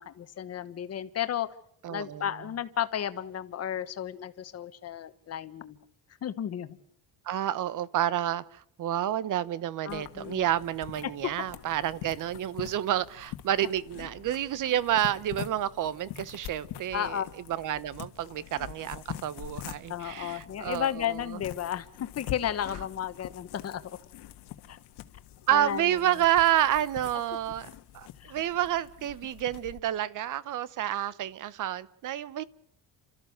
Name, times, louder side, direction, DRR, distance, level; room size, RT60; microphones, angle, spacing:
voice 1, 0.0-1.5 1.9-5.8 6.2-6.8 9.8-10.4 11.0-11.3 16.9-17.3 19.9-23.8 24.7-24.8 25.5-26.2 28.2-28.4, left 10 dB, 35° left, 1.2 m, -33 dB
voice 2, 1.8-2.2 7.3-17.2 17.5-21.1 25.5-27.7 27.9-32.4, right 12 dB, 50° right, 0.9 m, -29 dB
sound 1, 9.9-29.8, left 13 dB, 75° left, 1.6 m, -45 dB
29.5 x 14.0 x 7.9 m
cardioid pair, 175°, 41 cm